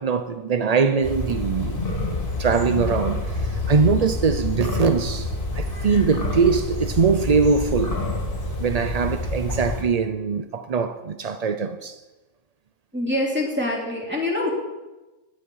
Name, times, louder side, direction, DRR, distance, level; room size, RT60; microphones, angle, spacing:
voice 1, 0.0-1.8 2.1-8.0 8.6-12.0, right 5 dB, 65° right, 0.4 m, -22 dB
sound 1, 1.0-9.8, left 2 dB, 35° left, 2.6 m, -27 dB
voice 2, 12.9-14.5, left 1 dB, 5° right, 3.4 m, -25 dB
16.5 x 10.0 x 5.6 m
omnidirectional pair, 1.6 m